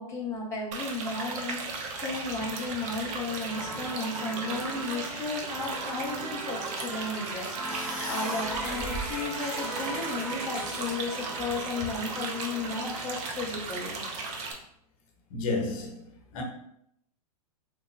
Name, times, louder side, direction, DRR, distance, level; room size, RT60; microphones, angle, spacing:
voice 1, 0.0-7.5 8.1-14.0, left 3 dB, 15° left, 0.6 m, -34 dB
sound 1, 0.7-14.5, right 3 dB, 35° right, 0.6 m, -36 dB
sound 2, 3.4-13.8, right 2 dB, 70° right, 1.2 m, -40 dB
sound 3, 6.8-7.0 7.3-10.9 11.5-12.1, right 1 dB, 5° right, 1.3 m, -39 dB
voice 2, 15.3-16.1 16.3-16.4, left 3 dB, 55° left, 0.9 m, -31 dB
3.3 x 2.1 x 3.2 m
hypercardioid pair, 115°, 20 cm